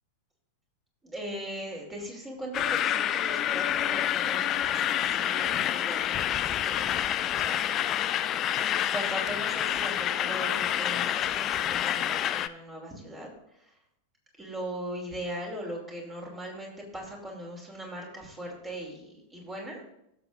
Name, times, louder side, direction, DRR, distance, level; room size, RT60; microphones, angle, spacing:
voice 1, 1.0-8.1 8.9-13.3 13.7-13.8 14.4-19.8, equal, 15° right, -1 dB, 2.8 m, -39 dB
sound 1, 2.5-12.5, left 11 dB, 30° left, 0.4 m, -28 dB
16.5 x 6.8 x 2.5 m, 0.80 s
figure-of-eight pair, 90°, 0 cm